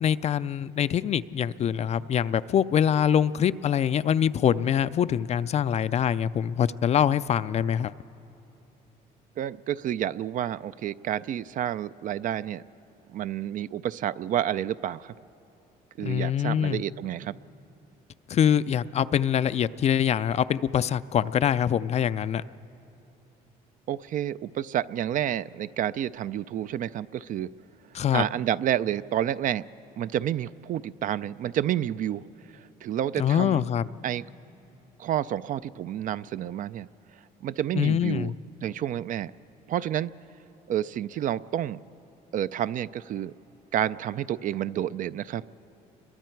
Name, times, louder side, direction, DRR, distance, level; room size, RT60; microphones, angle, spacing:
voice 1, 0.0-7.9 16.0-16.8 18.3-22.4 27.9-28.2 33.2-33.9 37.7-38.3, left 9 dB, 40° left, 15 dB, 0.4 m, -24 dB
voice 2, 9.4-12.6 13.1-15.1 16.0-17.4 23.9-27.5 28.1-29.7 30.0-32.2 32.8-33.6 34.0-34.2 35.0-36.9 37.4-38.3 38.6-39.3 39.7-40.1 40.7-41.8 42.3-43.3 43.7-45.4, right 11 dB, 50° right, 16 dB, 0.4 m, -29 dB
29.5 x 22.5 x 4.6 m, 2.9 s
cardioid pair, 110°, 17 cm